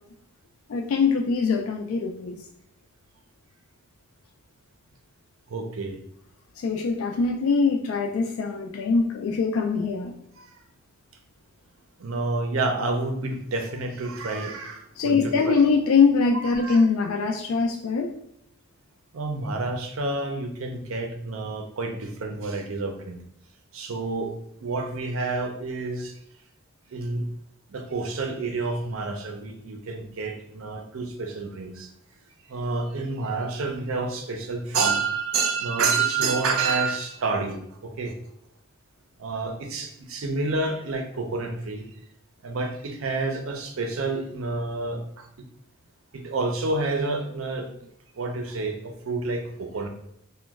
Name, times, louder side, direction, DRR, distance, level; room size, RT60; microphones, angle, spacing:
voice 1, 0.7-2.4 6.6-10.1 15.0-18.1, left 4 dB, 80° left, 3 dB, 0.3 m, -23 dB
voice 2, 5.5-6.0 10.4-10.5 12.0-15.6 16.3-16.8 19.1-23.2 23.7-24.3 24.6-26.2 26.9-27.3 27.7-31.9 32.5-38.1 39.2-41.9 42.4-45.5 46.1-47.9 48.2-49.9, right 3 dB, 75° right, 4 dB, 0.5 m, -29 dB
3.0 x 2.1 x 3.4 m, 0.75 s
head